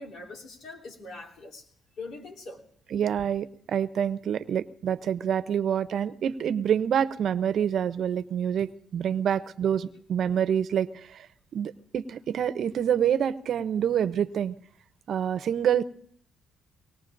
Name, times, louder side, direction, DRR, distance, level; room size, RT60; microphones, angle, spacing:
voice 1, 0.0-1.7 2.0-2.7, left 3 dB, 75° left, -2 dB, 3.2 m, -42 dB
voice 2, 2.9-11.3 11.5-14.5 15.1-15.8, right 9 dB, 65° right, 13 dB, 0.6 m, -27 dB
23.5 x 19.5 x 2.6 m, 0.63 s
cardioid pair, 90°, 0 cm